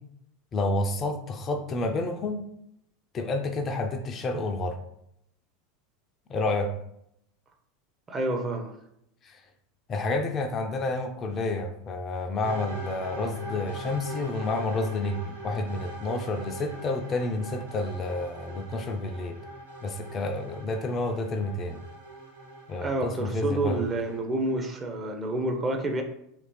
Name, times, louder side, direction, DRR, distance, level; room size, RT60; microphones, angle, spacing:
voice 1, 0.5-2.4 3.1-4.8 6.3-6.7 9.2-9.4 9.9-19.4 19.8-21.8 22.7-23.8, left 2 dB, 30° left, 4 dB, 0.4 m, -29 dB
voice 2, 8.1-8.7 22.8-26.0, right 2 dB, 20° right, 4 dB, 0.5 m, -28 dB
sound 1, 12.4-24.2, right 2 dB, 80° right, 1.2 m, -42 dB
3.1 x 2.6 x 3.0 m, 0.74 s
figure-of-eight pair, 80°, 0 cm